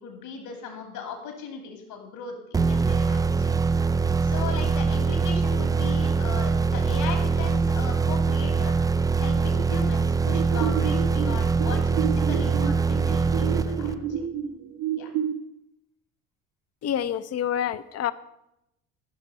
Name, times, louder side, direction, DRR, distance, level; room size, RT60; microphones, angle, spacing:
voice 1, 0.0-3.5 4.2-8.7 9.2-14.2 15.0-15.1, left 5 dB, 65° left, 4 dB, 2.6 m, -38 dB
sound 1, 2.5-14.2, right 4 dB, 10° right, 0.3 m, -23 dB
sound 2, 10.3-15.3, right 9 dB, 65° right, 1.1 m, -30 dB
voice 2, 16.8-18.1, left 10 dB, 40° left, 15 dB, 0.7 m, -27 dB
14.5 x 6.0 x 5.6 m, 0.84 s
hypercardioid pair, 60°, 40 cm